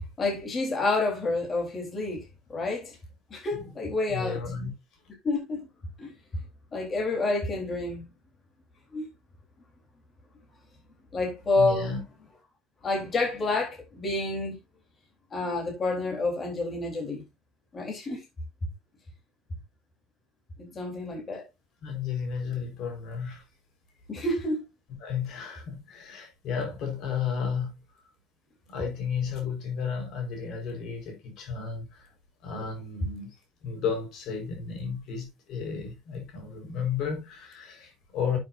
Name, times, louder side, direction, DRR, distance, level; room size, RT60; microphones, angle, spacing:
voice 1, 0.2-2.2 2.5-2.9 3.3-4.4 5.2-5.7 6.0-6.1 6.7-8.1 8.9-9.1 11.1-11.9 12.8-14.6 15.3-17.2 17.7-18.2 20.6-21.4 24.1-24.6, left 2 dB, 25° left, 3.9 m, -29 dB
voice 2, 4.1-4.7 11.6-12.0 21.3-21.4 21.8-23.4 25.0-27.8 28.7-32.1 32.4-33.4 33.6-38.4, left 6 dB, 55° left, 4.8 m, -33 dB
11.5 x 7.7 x 2.7 m
cardioid pair, 150°, 0 cm